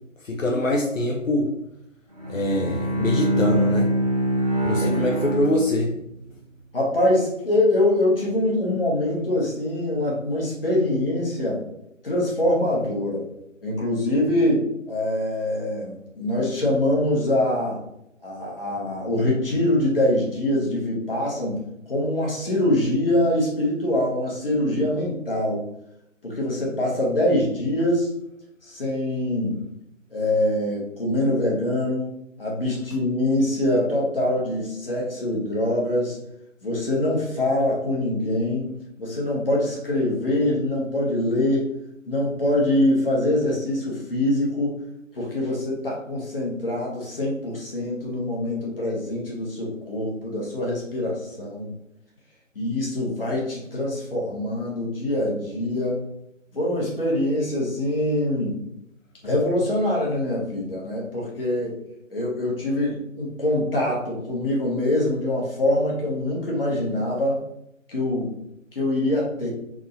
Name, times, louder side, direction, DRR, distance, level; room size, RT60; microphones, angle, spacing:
voice 1, 0.2-1.5 2.3-3.9 4.6-6.0, left 1 dB, 75° left, -1 dB, 0.8 m, -24 dB
Bowed string instrument, 2.1-6.2, right 1 dB, 30° right, 0.8 m, -24 dB
voice 2, 6.7-11.6 12.0-13.3 13.6-17.8 18.2-21.6 21.9-25.6 26.2-28.1 28.6-29.6 30.1-32.1 32.4-36.2 36.6-38.7 39.0-41.7 42.1-44.8 45.1-51.7 52.5-56.0 56.5-58.6 59.2-61.8 62.1-67.4 67.9-68.3 68.7-69.5, left 1 dB, 45° left, -3 dB, 1.4 m, -24 dB
3.6 x 3.1 x 2.7 m, 0.79 s
figure-of-eight pair, 165°, 39 cm